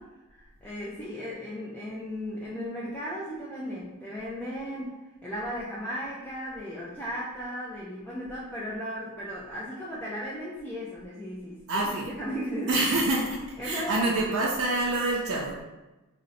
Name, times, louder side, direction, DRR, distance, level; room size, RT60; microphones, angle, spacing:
voice 1, 0.3-4.9 5.2-12.8 13.6-14.0, equal, 10° left, -7 dB, 0.4 m, -36 dB
voice 2, 11.7-12.1 12.7-15.6, right 2 dB, 65° right, -2 dB, 0.4 m, -27 dB
2.5 x 2.1 x 3.9 m, 1.1 s
head